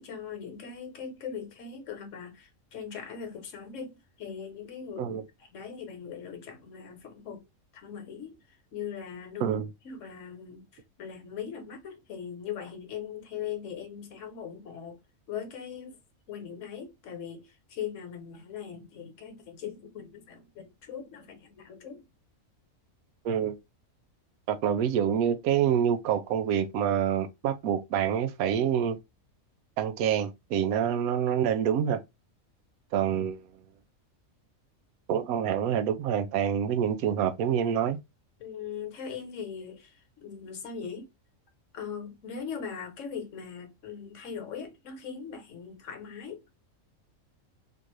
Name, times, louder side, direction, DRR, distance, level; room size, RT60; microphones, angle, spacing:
voice 1, 0.0-5.2 5.5-7.5 7.7-8.4 8.7-10.7 11.0-15.0 15.3-16.0 16.3-22.0 38.4-41.1 41.7-46.4, left 7 dB, 65° left, 1.2 m, -40 dB
voice 2, 23.2-23.6 24.5-29.0 29.8-32.0 32.9-33.5 35.1-38.0, right 9 dB, 90° right, 1.1 m, -27 dB
3.6 x 2.5 x 3.0 m
omnidirectional pair, 1.5 m